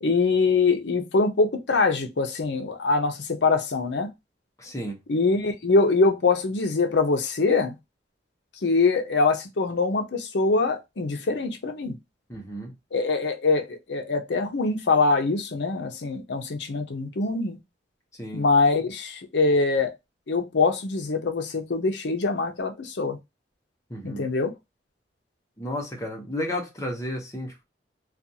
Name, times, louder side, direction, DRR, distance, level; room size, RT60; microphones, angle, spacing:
voice 1, 0.0-4.1 5.1-7.8 8.6-12.0 12.9-17.6 18.3-19.9 20.3-23.2 24.0-24.5, left 3 dB, 75° left, 0.6 m, -23 dB
voice 2, 4.6-5.0 12.3-12.7 18.1-18.4 23.9-24.3 25.6-27.6, left 1 dB, 15° left, 0.9 m, -33 dB
2.5 x 2.3 x 2.7 m
head